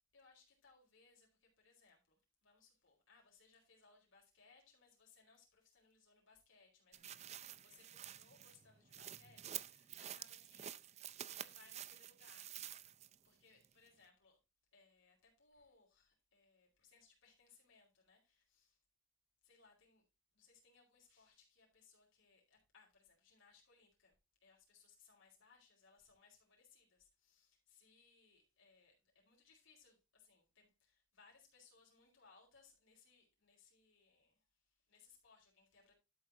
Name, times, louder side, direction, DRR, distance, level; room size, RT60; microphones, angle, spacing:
voice 1, 0.1-10.8 11.2-12.8 13.2-14.4 14.7-18.8 19.4-20.1 20.3-24.1 24.4-35.9, left 4 dB, 65° left, 4.6 m, -69 dB
sound 1, 6.9-13.3 13.6-13.7, right 11 dB, 30° right, 0.4 m, -50 dB
12.5 x 7.9 x 2.7 m
head